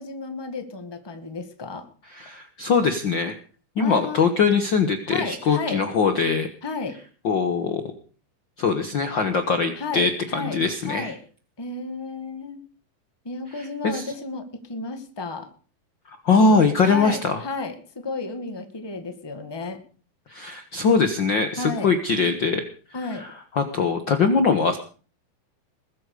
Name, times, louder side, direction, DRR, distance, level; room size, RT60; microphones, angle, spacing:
voice 1, 0.0-1.8 3.8-4.3 5.1-5.8 6.6-7.0 9.7-11.2 11.6-12.6 13.2-15.5 16.4-19.8 21.6-21.9 22.9-23.2, left 3 dB, 10° left, 7 dB, 1.4 m, -33 dB
voice 2, 2.1-3.4 3.8-6.5 7.2-7.8 8.6-11.1 13.8-14.0 16.2-17.4 20.3-22.6 23.6-24.8, left 4 dB, 50° left, 7 dB, 1.5 m, -21 dB
21.0 x 8.7 x 6.7 m, 0.40 s
omnidirectional pair, 3.6 m